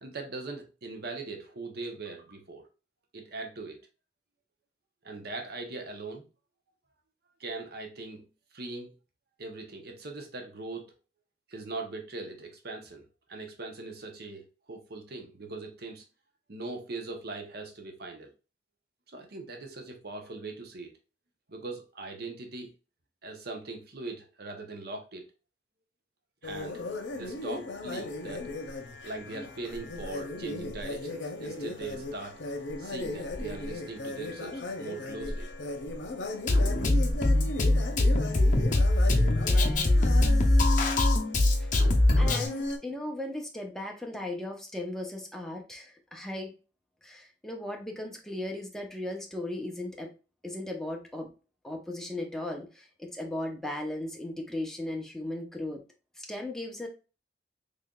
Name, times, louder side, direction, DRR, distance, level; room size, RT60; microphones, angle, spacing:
voice 1, 0.0-2.7 3.1-3.8 5.0-6.3 7.4-8.3 8.5-8.9 9.4-10.9 11.5-16.0 16.5-18.3 19.1-20.9 21.5-22.7 23.2-25.2 26.4-26.8 27.1-28.5 29.0-32.4 32.8-35.5, right 3 dB, 60° right, 4 dB, 0.8 m, -40 dB
sound 1, 26.4-42.8, left 2 dB, 85° left, 0.7 m, -36 dB
Drum kit, 36.5-42.5, left 1 dB, 45° left, 0.7 m, -23 dB
voice 2, 39.3-40.8 41.6-41.7 42.2-46.5 47.0-50.1 50.4-51.3 51.6-55.8 56.2-56.9, left 1 dB, 5° left, 1 dB, 0.7 m, -37 dB
3.7 x 3.3 x 2.3 m, 0.33 s
head